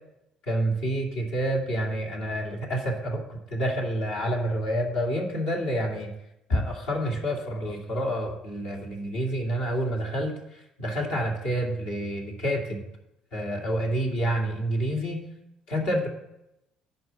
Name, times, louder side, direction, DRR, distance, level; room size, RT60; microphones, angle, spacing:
voice 1, 0.4-6.1 6.5-12.8 13.3-15.2 15.7-16.1, equal, 70° left, -1 dB, 2.2 m, -28 dB
11.0 x 4.6 x 7.4 m, 0.88 s
hypercardioid pair, 55°, 2 cm